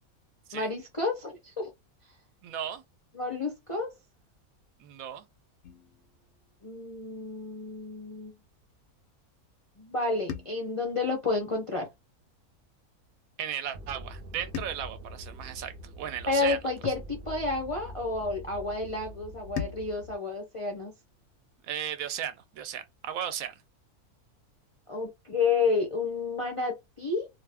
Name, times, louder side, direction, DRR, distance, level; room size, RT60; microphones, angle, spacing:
voice 1, 0.5-1.7 3.1-3.9 6.6-8.3 9.8-11.9 16.3-20.9 24.9-27.3, left 3 dB, 45° left, 0.4 m, -30 dB
voice 2, 2.4-2.8 4.8-5.2 13.4-16.6 21.6-23.6, right 9 dB, 75° right, 1.0 m, -36 dB
sound 1, 5.6-7.9 10.3-12.6 14.5-17.0 19.6-22.1, left 8 dB, 65° left, 0.8 m, -45 dB
sound 2, 13.7-20.2, equal, 50° right, 0.7 m, -45 dB
2.5 x 2.4 x 3.3 m
omnidirectional pair, 1.6 m